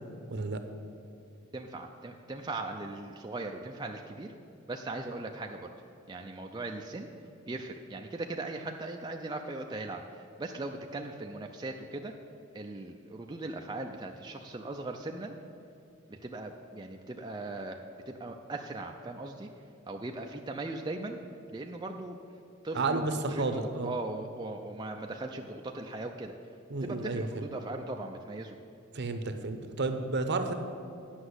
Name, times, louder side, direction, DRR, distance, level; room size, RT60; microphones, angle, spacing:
voice 1, 0.3-0.6 22.7-23.9 26.7-27.4 28.9-30.5, right 3 dB, 55° right, 8 dB, 0.8 m, -31 dB
voice 2, 1.5-4.3 4.7-5.7 6.1-7.1 7.5-12.1 12.5-15.3 16.1-19.5 19.9-21.2 21.5-22.2 22.6-23.1 23.3-26.3 26.8-28.6, right 2 dB, 20° right, 2 dB, 0.4 m, -39 dB
9.9 x 6.1 x 8.0 m, 2.7 s
head